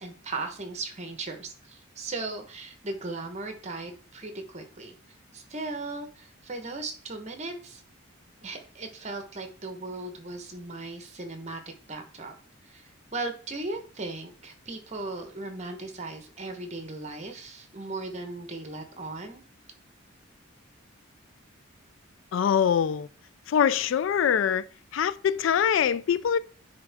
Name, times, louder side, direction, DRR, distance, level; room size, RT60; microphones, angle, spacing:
voice 1, 0.0-4.9 5.3-7.8 8.4-11.6 11.9-12.3 12.6-19.4, right 2 dB, 35° right, 1.1 m, -37 dB
voice 2, 22.3-23.1 23.5-24.6 24.9-26.4, left 8 dB, 65° left, 0.3 m, -23 dB
9.7 x 3.6 x 3.5 m
head